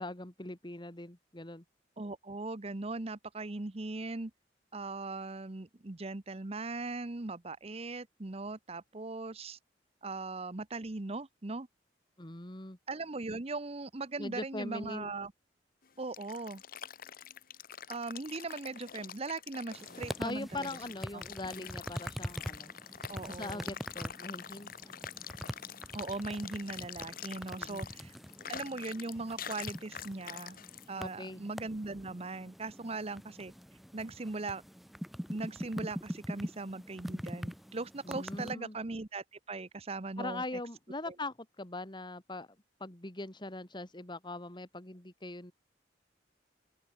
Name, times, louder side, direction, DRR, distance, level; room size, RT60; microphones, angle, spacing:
voice 1, 0.0-1.6 12.2-12.8 14.2-15.1 20.2-22.7 23.3-25.0 27.6-27.9 31.0-31.4 38.0-38.8 40.2-45.5, left 2 dB, 25° left, 2.1 m, -41 dB
voice 2, 2.0-4.3 4.7-9.6 10.0-11.7 12.9-15.3 16.0-16.6 17.9-20.7 21.1-21.2 23.1-23.7 25.9-28.1 28.5-30.6 30.9-33.5 33.9-34.6 35.3-40.4 41.1-41.2, right 3 dB, 35° right, 0.9 m, -39 dB
sound 1, 15.8-30.9, left 8 dB, 50° left, 1.3 m, -46 dB
sound 2, 19.7-38.5, equal, ahead, 3.4 m, -44 dB
open air
head